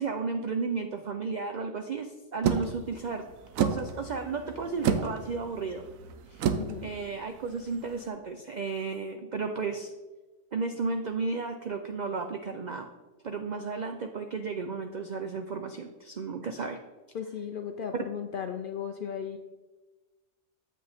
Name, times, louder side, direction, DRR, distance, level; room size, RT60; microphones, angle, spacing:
voice 1, 0.0-3.2 3.6-5.8 6.3-6.4 6.8-9.9 10.5-12.9 13.2-16.8, right 4 dB, 70° right, 6 dB, 0.4 m, -33 dB
sound 1, 2.4-8.0, right 6 dB, 85° right, 1.0 m, -32 dB
voice 2, 6.6-6.9 17.1-19.4, left 8 dB, 65° left, 6 dB, 0.5 m, -36 dB
7.8 x 7.4 x 3.4 m, 1.2 s
omnidirectional pair, 1.4 m